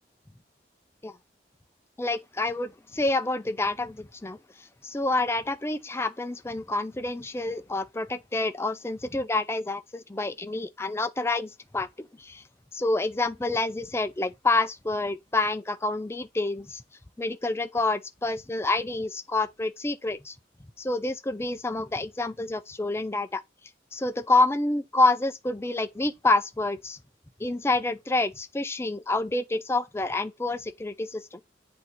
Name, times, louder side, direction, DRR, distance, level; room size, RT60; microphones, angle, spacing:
voice 1, 2.0-4.4 4.8-12.4 12.7-16.8 17.2-20.4 20.8-23.4 23.9-27.0 27.4-31.4, left 2 dB, 15° left, 0.4 m, -28 dB
8.1 x 2.8 x 4.5 m
head